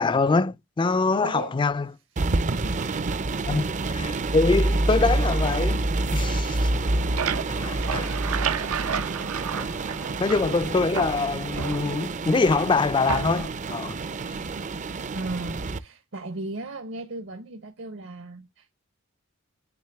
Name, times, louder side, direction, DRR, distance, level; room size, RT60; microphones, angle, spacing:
voice 1, 0.0-1.9 3.5-6.7 7.6-8.1 9.6-14.0, left 3 dB, 20° left, 0.3 m, -24 dB
voice 2, 1.2-1.6 2.2-2.9 3.4-3.6 8.0-8.3 15.1-18.7, right 2 dB, 60° right, 0.9 m, -37 dB
sound 1, 2.2-15.8, right 2 dB, 35° right, 0.5 m, -27 dB
sound 2, 6.8-10.6 10.9-12.3 13.1-13.6, right 7 dB, 90° right, 0.7 m, -32 dB
9.5 x 3.5 x 3.4 m
head